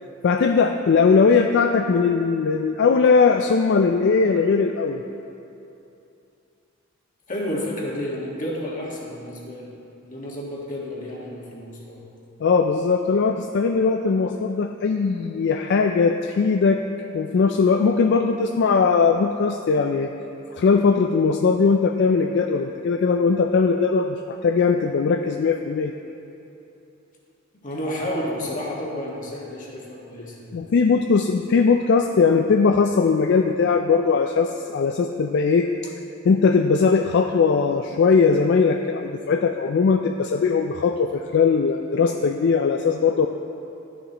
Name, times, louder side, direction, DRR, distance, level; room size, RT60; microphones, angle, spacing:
voice 1, 0.2-5.0 12.4-16.8 17.1-20.1 20.5-25.9 30.5-35.9 36.2-43.3, left 5 dB, 55° left, 5 dB, 0.3 m, -20 dB
voice 2, 7.3-9.7 10.0-12.1 27.6-30.6, left 1 dB, 40° left, -4 dB, 1.6 m, -31 dB
11.5 x 10.0 x 3.0 m, 2.8 s
head